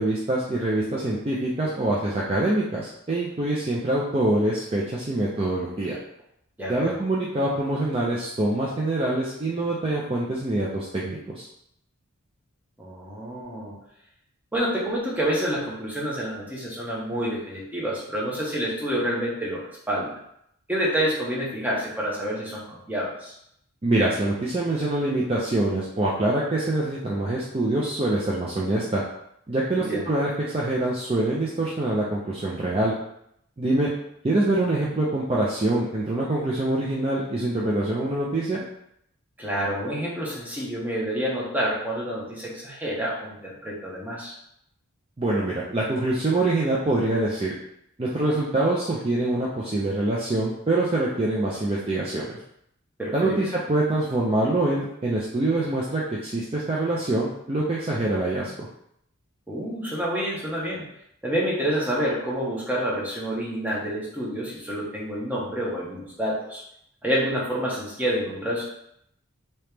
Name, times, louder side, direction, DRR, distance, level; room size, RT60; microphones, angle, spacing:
voice 1, 0.0-6.0 6.7-11.5 23.8-29.0 29.5-32.9 33.6-33.9 34.2-38.6 45.2-47.5 48.0-52.4 53.1-58.7, right 2 dB, 25° right, -5 dB, 0.4 m, -25 dB
voice 2, 6.6-6.9 12.8-13.8 14.5-20.2 20.7-23.4 29.7-30.1 39.4-44.3 53.0-53.4 59.5-60.8 61.2-66.6 67.0-68.6, equal, 10° right, -5 dB, 0.8 m, -28 dB
3.0 x 2.8 x 3.4 m, 0.74 s
head